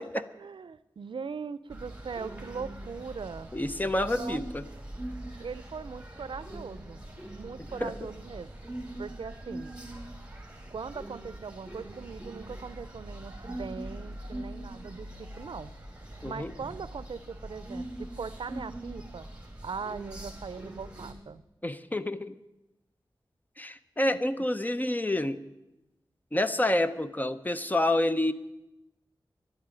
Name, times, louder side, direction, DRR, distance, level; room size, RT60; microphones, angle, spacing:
voice 1, 0.0-3.5 4.1-4.4 5.4-7.0 7.3-8.5 9.0-9.8 10.7-15.7 16.2-19.3 19.6-21.4, right 5 dB, 75° right, 16 dB, 0.5 m, -40 dB
sound 1, 1.7-21.1, right 1 dB, 15° right, 2.7 m, -42 dB
voice 2, 3.5-4.6 7.8-7.9 16.2-16.5 21.6-22.4 23.6-25.4 26.3-28.3, left 1 dB, 20° left, 12 dB, 0.6 m, -28 dB
11.5 x 8.8 x 9.6 m, 0.95 s
wide cardioid pair, 90°, 9 cm